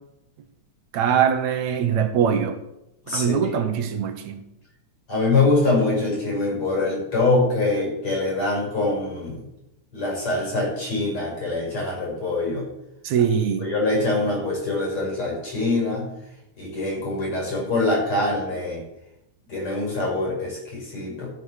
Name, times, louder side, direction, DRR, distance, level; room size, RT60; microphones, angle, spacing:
voice 1, 0.9-2.6 3.1-4.4 13.0-13.7, right 8 dB, 75° right, 7 dB, 2.3 m, -22 dB
voice 2, 3.0-3.5 5.1-9.4 9.9-12.7 13.6-16.1 16.6-18.8 19.5-21.3, left 2 dB, 45° left, -3 dB, 6.9 m, -24 dB
14.5 x 7.1 x 6.5 m, 0.87 s
omnidirectional pair, 3.3 m